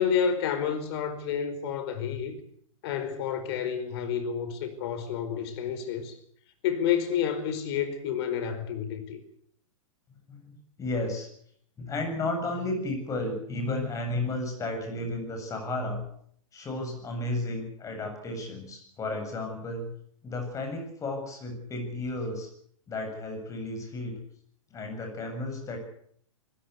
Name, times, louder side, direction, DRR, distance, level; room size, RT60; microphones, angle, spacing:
voice 1, 0.0-2.3 2.8-6.2 6.6-9.2, left 8 dB, 50° left, 4.8 m, -29 dB
voice 2, 10.3-11.3 11.8-16.0 16.5-19.9 20.2-22.5 22.9-24.2 24.7-25.8, left 2 dB, 20° left, 7.6 m, -33 dB
26.0 x 16.0 x 8.3 m
hypercardioid pair, 120°, 17 cm